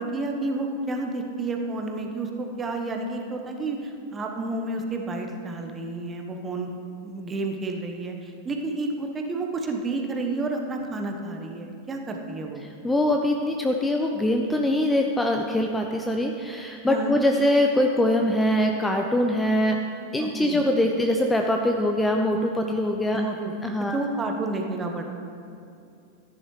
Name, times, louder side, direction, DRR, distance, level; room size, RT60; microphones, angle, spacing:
voice 1, 0.0-6.7 7.0-12.6 16.9-17.2 20.2-20.6 23.1-25.0, right 2 dB, 20° right, 3 dB, 1.1 m, -30 dB
voice 2, 12.8-19.8 20.1-23.2 23.6-24.0, left 1 dB, 10° left, 3 dB, 0.5 m, -23 dB
14.0 x 10.0 x 3.2 m, 2.5 s
figure-of-eight pair, 90°, 0 cm